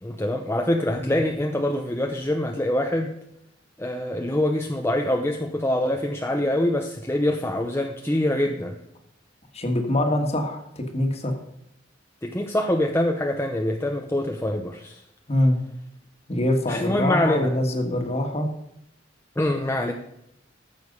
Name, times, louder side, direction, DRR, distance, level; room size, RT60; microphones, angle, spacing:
voice 1, 0.0-3.1 3.8-8.8 12.2-15.0 16.7-17.5 19.4-19.9, left 1 dB, 15° left, 3 dB, 0.7 m, -25 dB
voice 2, 9.5-11.4 15.3-15.6 16.3-18.5, left 1 dB, 35° left, 5 dB, 1.7 m, -24 dB
14.5 x 6.8 x 5.4 m, 0.80 s
head